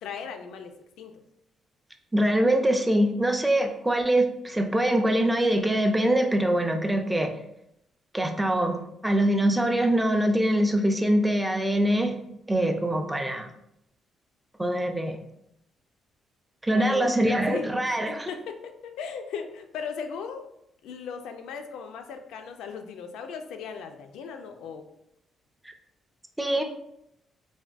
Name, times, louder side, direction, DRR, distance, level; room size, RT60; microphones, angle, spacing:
voice 1, 0.0-1.1 16.7-20.5 20.8-24.9, left 6 dB, 85° left, 6 dB, 0.3 m, -38 dB
voice 2, 2.1-7.3 8.1-12.2 12.5-13.5 14.6-15.2 16.6-18.3 26.4-26.6, right 1 dB, 10° right, 5 dB, 0.4 m, -23 dB
3.4 x 2.2 x 2.4 m, 0.79 s
cardioid pair, 90°, 0 cm